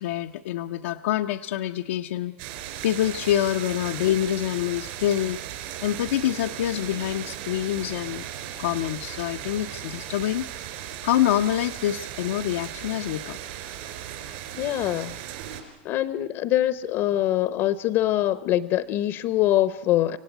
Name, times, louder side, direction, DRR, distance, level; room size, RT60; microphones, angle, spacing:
voice 1, 0.0-2.4 2.8-5.4 5.8-8.2 8.6-10.5 11.0-13.4, left 12 dB, 80° left, 3 dB, 0.7 m, -26 dB
sound 1, 2.4-15.6, right 11 dB, 65° right, 4.2 m, -37 dB
voice 2, 14.6-15.1 15.8-20.2, left 13 dB, 45° left, 14 dB, 0.8 m, -24 dB
26.0 x 16.5 x 9.4 m, 1.1 s
supercardioid pair, 135°, 6 cm